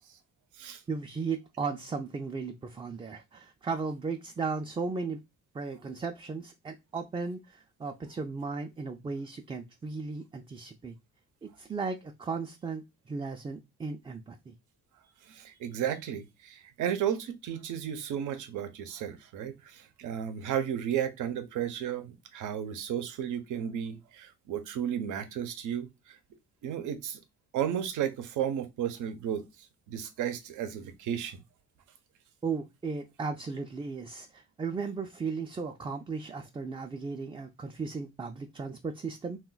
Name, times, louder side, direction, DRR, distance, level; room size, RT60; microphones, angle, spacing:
voice 1, 0.9-5.2 5.5-11.0 11.4-14.5 32.4-39.4, right 4 dB, 20° right, 0.4 m, -36 dB
voice 2, 15.3-26.2 26.6-27.2 27.5-29.5 29.9-31.4, right 9 dB, 80° right, 0.7 m, -33 dB
2.3 x 2.2 x 3.8 m
cardioid pair, 90°, 30 cm